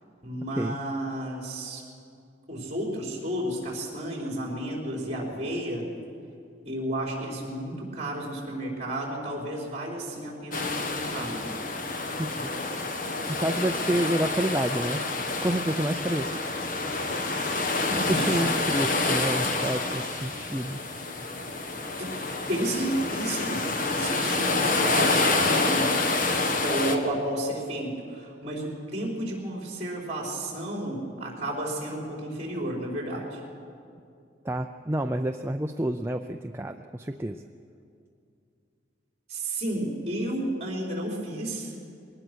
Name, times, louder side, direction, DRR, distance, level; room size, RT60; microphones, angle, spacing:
voice 1, 0.2-1.8 2.5-5.9 6.6-11.5 17.9-18.3 22.0-25.9 26.6-33.4 39.3-41.7, right 1 dB, 35° right, -2 dB, 4.8 m, -32 dB
sound 1, 10.5-27.0, left 3 dB, 45° left, 1.5 m, -28 dB
voice 2, 12.2-12.5 13.3-15.0 15.4-16.3 17.9-20.8 34.4-37.4, right 1 dB, 15° right, 6 dB, 0.4 m, -29 dB
22.0 x 18.5 x 6.3 m, 2.5 s
head